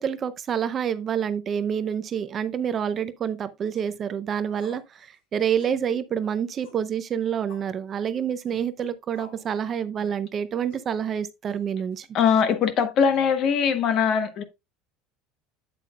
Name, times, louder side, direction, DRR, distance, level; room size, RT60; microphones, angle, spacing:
voice 1, 0.0-12.1, right 8 dB, 25° right, 0.5 m, -28 dB
sound 1, 3.7-4.0 4.5-4.9 5.1-5.2 5.6-5.8 6.6-6.9 7.5-7.7 8.4-8.6 9.1-9.5 10.0-10.2 10.7-10.9 11.5-11.9, left 3 dB, 85° left, 5.4 m, -50 dB
voice 2, 12.1-14.4, left 7 dB, 40° left, 1.1 m, -21 dB
8.4 x 7.9 x 2.2 m
cardioid pair, 165°, 0 cm